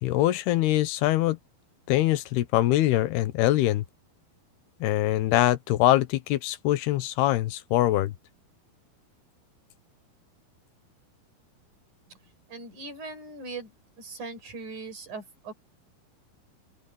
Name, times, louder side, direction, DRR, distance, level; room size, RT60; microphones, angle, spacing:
voice 1, 0.0-1.4 1.9-3.8 4.8-8.1, left 15 dB, 80° left, 3.0 m, -23 dB
voice 2, 12.5-13.7 14.0-15.5, right 3 dB, 50° right, 7.2 m, -40 dB
open air
omnidirectional pair, 4.6 m